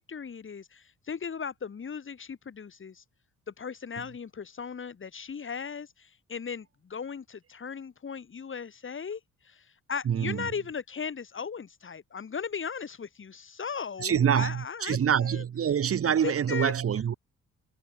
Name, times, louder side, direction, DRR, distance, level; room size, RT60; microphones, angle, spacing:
voice 1, 0.0-3.0 3.5-15.4 16.2-16.7, left 6 dB, 40° left, 5.8 m, -37 dB
voice 2, 10.1-10.4 14.0-17.1, right 8 dB, 50° right, 1.6 m, -26 dB
cardioid pair, 90°, 30 cm